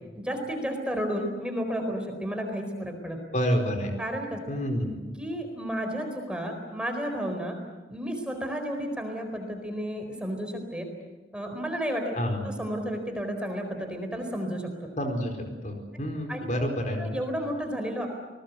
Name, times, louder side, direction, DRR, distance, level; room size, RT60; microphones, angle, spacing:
voice 1, 0.1-3.2 4.0-4.4 5.2-7.6 7.9-10.9 11.3-12.1 12.4-14.7 16.3-16.4 17.0-18.1, equal, 5° right, 4 dB, 4.3 m, -32 dB
voice 2, 3.3-3.9 4.5-4.9 12.2-12.4 15.0-15.3 15.6-17.1, equal, 45° left, 3 dB, 4.6 m, -28 dB
29.5 x 20.0 x 8.3 m, 1.2 s
head